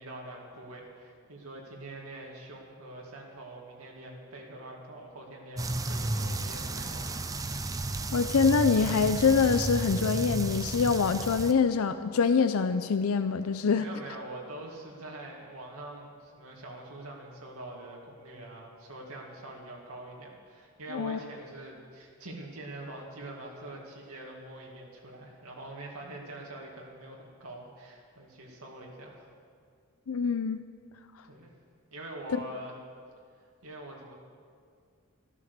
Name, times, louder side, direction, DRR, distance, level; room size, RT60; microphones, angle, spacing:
voice 1, 0.0-7.3 13.8-29.2 31.3-31.5 31.9-32.8 33.6-34.1, right 1 dB, 80° right, -2 dB, 2.2 m, -44 dB
sound 1, 5.6-11.5, right 2 dB, 15° right, 0.5 m, -33 dB
voice 2, 8.1-13.9 20.9-21.2 30.1-30.6, left 5 dB, 75° left, 10 dB, 0.5 m, -25 dB
13.5 x 12.5 x 6.7 m, 2.2 s
head